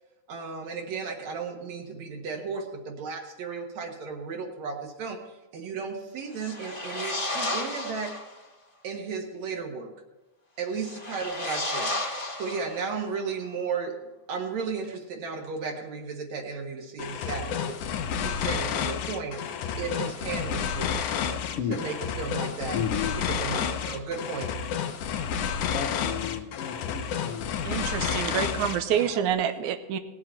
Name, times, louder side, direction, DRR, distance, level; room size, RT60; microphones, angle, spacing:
voice 1, 0.3-5.2 5.5-8.1 8.8-9.9 10.6-11.9 12.3-14.0 14.3-17.8 18.2-19.4 19.8-21.1 21.7-22.8 23.2-24.5, right 5 dB, 70° right, 1 dB, 2.5 m, -34 dB
sound 1, 6.3-8.4 10.7-13.1, left 2 dB, 25° left, 1.1 m, -33 dB
sound 2, 17.0-29.2, left 7 dB, 85° left, 2.3 m, -30 dB
voice 2, 22.7-23.2 25.7-27.5 27.9-28.0, left 8 dB, 65° left, 0 dB, 1.6 m, -33 dB
voice 3, 27.6-30.0, right 9 dB, 90° right, 9 dB, 2.2 m, -27 dB
18.5 x 7.5 x 4.5 m, 1.0 s
omnidirectional pair, 3.4 m